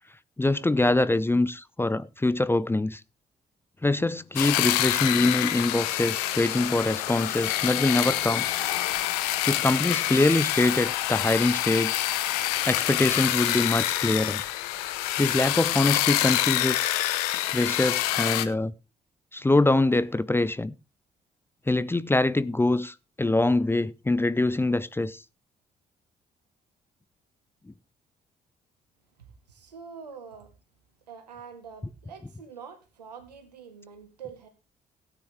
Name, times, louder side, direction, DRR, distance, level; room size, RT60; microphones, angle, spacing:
voice 1, 0.4-3.0 3.8-8.4 9.5-12.0 12.6-14.4 15.2-16.9 17.5-18.7 19.3-20.7 21.7-25.2, left 2 dB, 10° left, 0.6 m, -24 dB
sound 1, 4.4-18.5, left 14 dB, 70° left, 0.9 m, -27 dB
voice 2, 29.5-30.5 31.1-34.5, right 6 dB, 80° right, 1.7 m, -45 dB
16.5 x 9.0 x 3.3 m
figure-of-eight pair, 40°, 21 cm